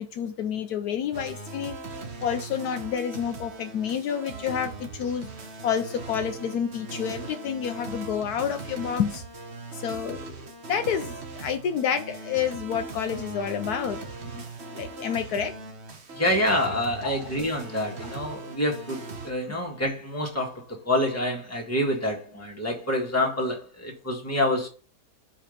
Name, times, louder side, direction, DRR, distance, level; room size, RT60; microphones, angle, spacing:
voice 1, 0.0-9.2 9.7-15.6 17.0-17.2 18.0-18.1, left 8 dB, 75° left, 1.2 m, -29 dB
sound 1, 1.1-19.3, right 3 dB, 45° right, 1.2 m, -39 dB
voice 2, 16.1-24.7, left 1 dB, 10° left, 1.7 m, -27 dB
5.4 x 5.1 x 5.2 m
omnidirectional pair, 1.7 m